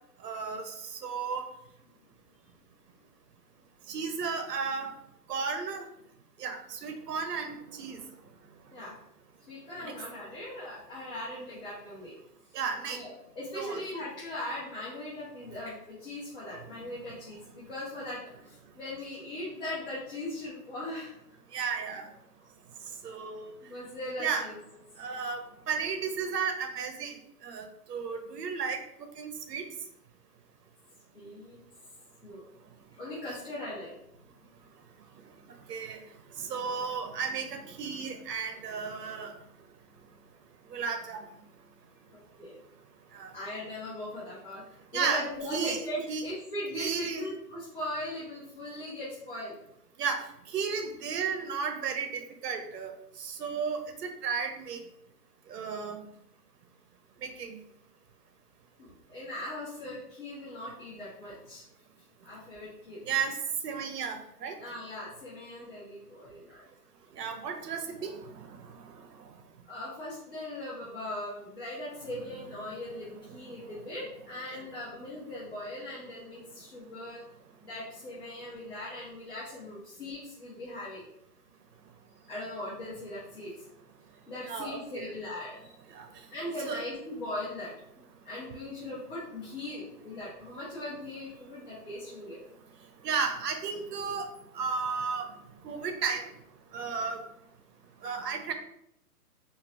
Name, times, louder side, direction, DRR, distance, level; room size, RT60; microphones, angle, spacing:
voice 1, 0.2-1.5 3.9-4.9 5.3-5.8 6.4-8.0 9.8-9.9 12.5-13.0 13.5-13.8 21.5-22.1 23.0-23.5 24.2-24.5 25.0-27.1 27.4-28.8 29.2-29.6 35.7-36.0 36.4-39.4 40.7-41.2 43.1-43.3 44.9-45.2 45.5-46.2 46.7-47.3 50.0-50.2 50.5-52.9 53.2-54.8 55.5-56.0 57.2-57.6 63.1-63.4 63.6-64.6 67.2-68.5 74.5-74.6 84.4-85.1 85.9-86.1 86.6-86.8 93.0-94.3 94.5-95.3 95.6-96.3 96.7-97.2 98.0-98.5, right 5 dB, 80° right, 5 dB, 0.8 m, -33 dB
voice 2, 9.5-12.1 12.8-21.2 23.6-24.6 31.1-31.6 32.2-32.4 32.9-33.9 42.1-42.6 43.3-44.6 44.9-49.6 58.8-61.6 62.2-63.0 64.6-66.6 69.7-77.2 77.6-81.0 82.3-83.5 84.2-85.8 86.3-87.7 88.2-92.4 96.9-97.0, left 1 dB, 35° left, -10 dB, 1.4 m, -39 dB
4.6 x 2.6 x 2.5 m, 0.75 s
hypercardioid pair, 175°, 47 cm